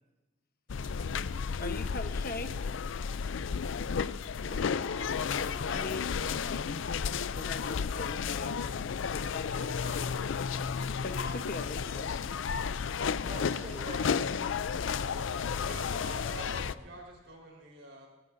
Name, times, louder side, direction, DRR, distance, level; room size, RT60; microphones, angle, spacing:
sound 1, 0.7-16.7, left 6 dB, 75° left, 0.4 m, -33 dB
voice 1, 1.6-2.5 5.7-6.7 7.3-8.6 9.2-12.1, left 3 dB, 50° left, 8 dB, 1.0 m, -41 dB
voice 2, 4.9-5.4 13.2-14.4 14.7-15.9 16.3-16.7, equal, 35° right, -5 dB, 5.8 m, -46 dB
voice 3, 15.6-18.1, right 2 dB, 80° right, -1 dB, 4.2 m, -47 dB
29.0 x 14.0 x 2.7 m, 1.2 s
head